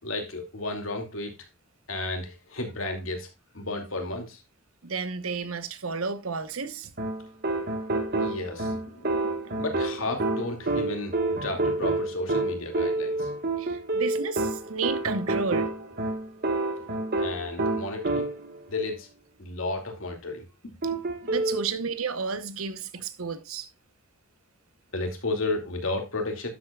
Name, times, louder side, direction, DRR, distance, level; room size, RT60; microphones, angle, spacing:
voice 1, 0.0-1.3 1.9-4.4 8.2-13.3 16.8-16.9 17.2-18.3 18.7-19.1 19.4-21.4 24.9-26.5, left 2 dB, 70° left, 2.5 m, -33 dB
voice 2, 4.8-6.9 13.6-15.7 21.3-23.7, right 5 dB, 90° right, 1.0 m, -32 dB
sound 1, 7.0-18.6 20.8-21.6, right 2 dB, 50° right, 1.4 m, -28 dB
11.5 x 8.2 x 2.3 m
head